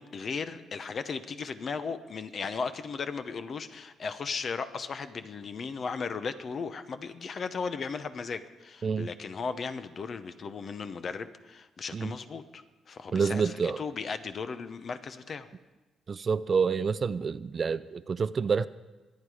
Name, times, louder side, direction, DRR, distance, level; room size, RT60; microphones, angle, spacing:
voice 1, 0.0-15.5, left 5 dB, 50° left, 11 dB, 0.9 m, -36 dB
voice 2, 13.1-13.8 16.1-18.7, right 5 dB, 40° right, 16 dB, 0.4 m, -28 dB
24.0 x 9.5 x 4.9 m, 1.2 s
cardioid pair, 90°, 0 cm